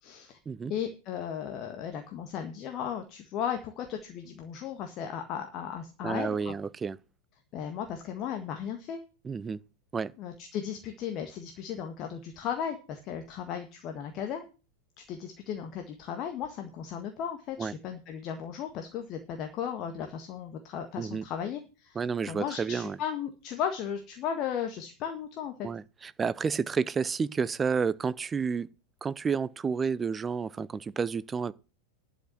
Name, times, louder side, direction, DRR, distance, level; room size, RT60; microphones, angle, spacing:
voice 1, 0.0-0.4 0.7-6.5 7.5-9.0 10.2-14.5 15.0-22.0 22.2-25.5, left 8 dB, 35° left, 1.7 m, -36 dB
voice 2, 6.0-7.0 9.2-9.6 9.9-10.1 17.6-17.7 21.0-21.2 21.9-23.0 25.6-28.7 29.0-31.5, right 5 dB, 15° right, 0.5 m, -30 dB
11.5 x 5.8 x 7.8 m
figure-of-eight pair, 90°, 0 cm